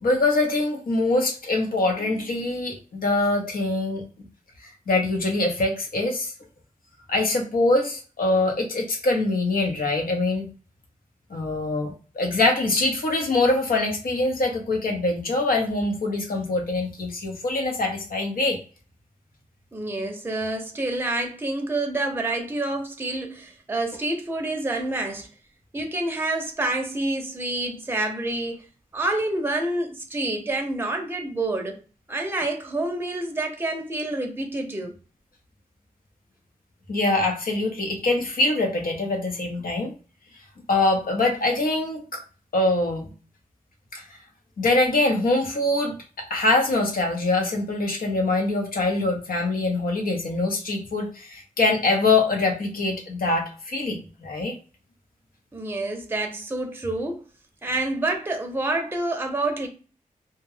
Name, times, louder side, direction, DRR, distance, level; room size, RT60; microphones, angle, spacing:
voice 1, 0.0-4.0 4.9-6.3 7.1-10.5 11.3-18.6 36.9-39.9 40.7-42.2 42.5-43.1 43.9-44.0 44.6-54.5, left 2 dB, 80° left, 0.8 m, -24 dB
voice 2, 19.7-25.3 25.7-28.6 28.9-31.8 32.1-34.9 55.5-57.2 57.6-59.7, right 2 dB, 15° right, 0.6 m, -28 dB
2.3 x 2.1 x 3.2 m
wide cardioid pair, 70°, 15 cm